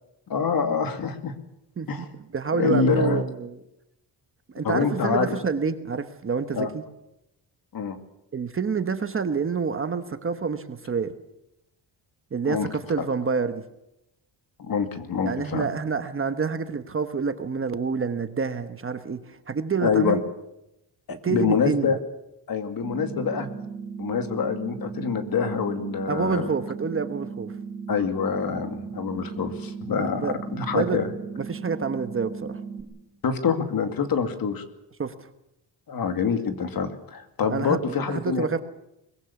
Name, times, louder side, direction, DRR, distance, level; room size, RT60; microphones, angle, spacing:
voice 1, 0.3-1.3 1.9-2.1 2.5-3.2 4.6-5.4 6.5-6.7 7.7-8.0 12.4-12.7 13.0-13.1 14.6-15.7 19.8-20.2 21.3-22.0 22.5-23.5 24.0-26.5 27.9-31.1 33.2-34.6 35.9-38.5, left 6 dB, 50° left, 7 dB, 2.5 m, -26 dB
voice 2, 1.8-3.6 4.5-6.8 8.3-11.1 12.3-13.6 15.2-20.2 21.1-21.9 26.1-27.5 30.0-31.0 31.4-32.6 35.0-35.1 37.5-38.6, right 5 dB, 30° right, 9 dB, 1.1 m, -28 dB
sound 1, 22.8-32.8, right 5 dB, ahead, 3.5 m, -36 dB
23.0 x 21.5 x 7.1 m, 0.86 s
wide cardioid pair, 165°, 44 cm